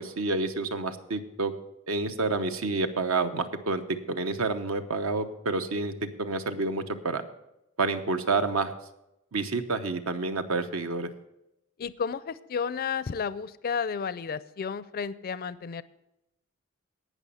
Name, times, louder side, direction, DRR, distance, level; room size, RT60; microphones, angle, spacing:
voice 1, 0.0-1.5 1.9-3.8 4.1-7.2 7.8-8.7 9.3-11.1, right 3 dB, 70° right, 8 dB, 0.9 m, -29 dB
voice 2, 11.8-15.8, left 6 dB, 45° left, 16 dB, 0.4 m, -32 dB
17.5 x 6.1 x 5.6 m, 0.88 s
head